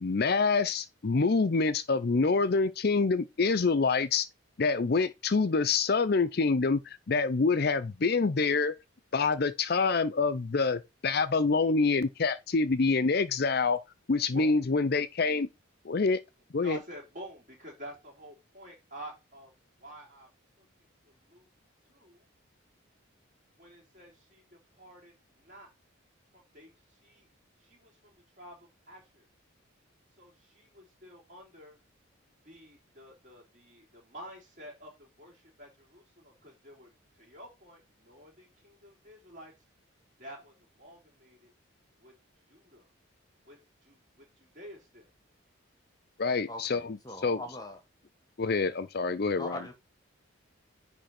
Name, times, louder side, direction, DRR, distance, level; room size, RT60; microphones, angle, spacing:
voice 1, 0.0-4.3 4.6-8.8 9.1-13.8 14.1-15.5 15.8-16.2 16.5-16.8 46.2-47.0 47.2-47.4 48.4-49.6, left 4 dB, 50° left, 0.5 m, -26 dB
voice 2, 14.3-14.6 16.6-19.5 19.8-20.3 20.6-20.7 21.0-21.5 21.8-22.3 23.6-25.7 26.3-27.3 27.6-29.3 30.2-31.8 32.4-39.5 40.2-41.5 42.0-42.1 42.5-42.9 43.4-45.1, right 1 dB, 35° right, 3.8 m, -50 dB
voice 3, 46.5-47.8 49.4-49.7, left 1 dB, 20° left, 1.2 m, -41 dB
10.0 x 3.4 x 4.3 m
head